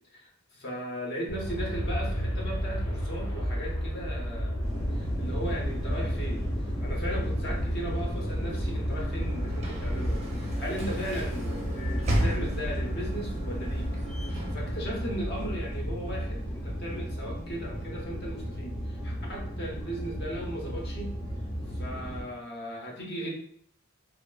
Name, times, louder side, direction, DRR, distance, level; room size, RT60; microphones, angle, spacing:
voice 1, 0.1-4.6 4.9-6.5 6.8-13.9 14.3-21.2 21.7-23.3, equal, 50° left, -2 dB, 0.6 m, -37 dB
Aircraft, 1.3-17.5, equal, 75° left, 0.8 m, -34 dB
sound 1, 4.6-22.2, equal, 10° left, 0.7 m, -34 dB
Sliding door / Slam, 8.7-15.7, equal, 30° right, 0.4 m, -35 dB
2.9 x 2.0 x 2.2 m, 0.65 s
head